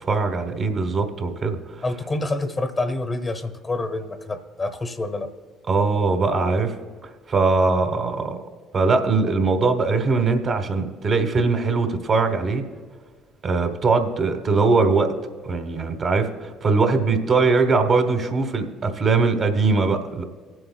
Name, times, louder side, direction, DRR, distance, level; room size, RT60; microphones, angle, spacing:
voice 1, 0.1-1.6 5.7-6.7 7.3-8.4 8.7-12.6 13.4-15.1 15.4-20.2, right 4 dB, 45° right, 6 dB, 1.1 m, -21 dB
voice 2, 1.8-5.3, left 2 dB, 25° left, 9 dB, 0.9 m, -27 dB
23.0 x 7.8 x 2.2 m, 1.5 s
hypercardioid pair, 60°, 0 cm